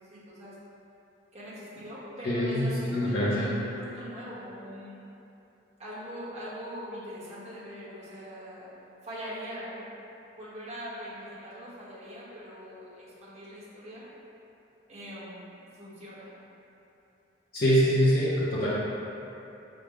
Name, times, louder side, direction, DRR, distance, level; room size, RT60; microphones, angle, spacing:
voice 1, 0.0-0.6 1.3-5.0 5.8-8.7 9.0-9.9 10.3-14.1 14.9-16.3, equal, 35° right, -9 dB, 1.2 m, -42 dB
voice 2, 2.2-2.6 2.9-3.5 17.5-18.7, equal, 50° left, -11 dB, 0.7 m, -24 dB
5.0 x 2.1 x 4.8 m, 2.8 s
head